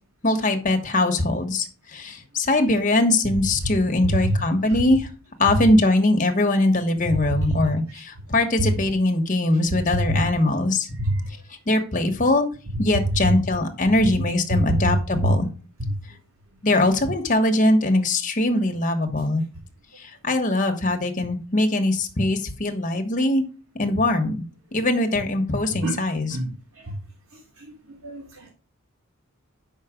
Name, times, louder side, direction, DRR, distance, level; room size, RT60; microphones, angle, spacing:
voice 1, 0.2-5.1 5.4-10.9 11.7-12.5 12.8-15.5 16.6-19.4 20.0-23.4 23.8-24.4 24.7-26.4, left 2 dB, 35° left, 5 dB, 1.2 m, -21 dB
voice 2, 7.0-7.5 10.1-10.2 11.0-11.2 13.2-13.3 14.5-14.8 15.2-15.3 15.8-15.9 25.8-25.9 26.3-26.5 26.8-26.9 27.6-27.7 28.0-28.5, equal, 80° right, -1 dB, 1.8 m, -25 dB
6.4 x 5.4 x 5.0 m, 0.35 s
head